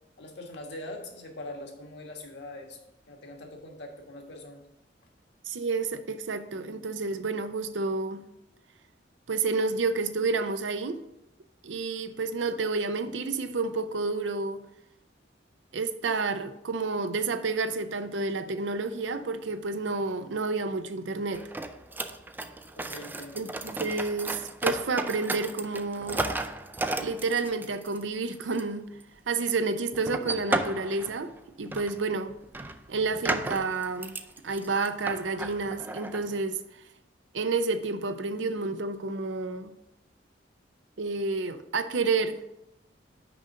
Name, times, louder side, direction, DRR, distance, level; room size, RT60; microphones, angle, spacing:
voice 1, 0.2-2.8 3.1-4.6 22.7-23.4, left 1 dB, 65° left, 1.5 m, -42 dB
voice 2, 5.5-8.2 9.3-11.0 11.6-14.6 15.7-21.4 23.4-23.5 23.8-26.3 27.0-28.9 29.3-31.3 31.6-32.3 32.9-34.2 34.4-36.6 37.3-39.7 41.0-42.4, right 3 dB, 80° right, 0.6 m, -30 dB
sound 1, 21.3-28.0 28.3-28.6 29.0-29.1 29.9-31.4 31.7-32.0 32.3-36.3, right 2 dB, 10° right, 0.3 m, -34 dB
6.0 x 5.1 x 6.5 m
head